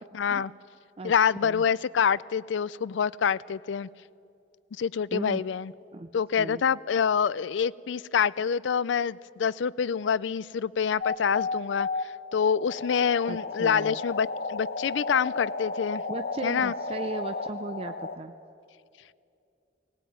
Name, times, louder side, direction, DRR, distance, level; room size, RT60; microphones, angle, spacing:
voice 1, 0.1-0.5 1.0-3.9 4.8-5.7 6.1-16.0 16.4-16.7, left 7 dB, 75° left, 21 dB, 0.4 m, -26 dB
voice 2, 5.1-5.4 5.9-6.1 6.4-6.6 13.3-14.0 16.1-18.3, right 2 dB, 30° right, 8 dB, 0.4 m, -37 dB
sound 1, 11.0-18.2, left 3 dB, 55° left, 0.9 m, -33 dB
18.5 x 17.5 x 9.3 m, 2.5 s
head